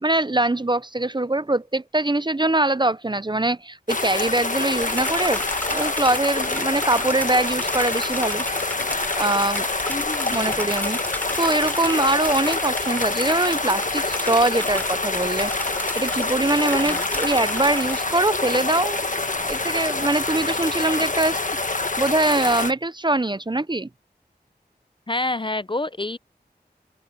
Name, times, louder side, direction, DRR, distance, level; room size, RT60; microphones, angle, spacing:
voice 1, 0.0-5.4 5.7-8.4 9.2-9.7 10.3-11.0 11.4-15.5 16.0-19.0 19.4-21.4 22.0-23.9, right 2 dB, 25° right, 0.6 m, -23 dB
sound 1, 3.9-22.7, left 2 dB, 50° left, 1.4 m, -26 dB
sound 2, 4.8-18.0, equal, 10° left, 3.7 m, -34 dB
voice 2, 9.9-10.7 16.8-17.0 25.1-26.2, left 2 dB, 30° left, 0.5 m, -28 dB
open air
wide cardioid pair, 50°, 17 cm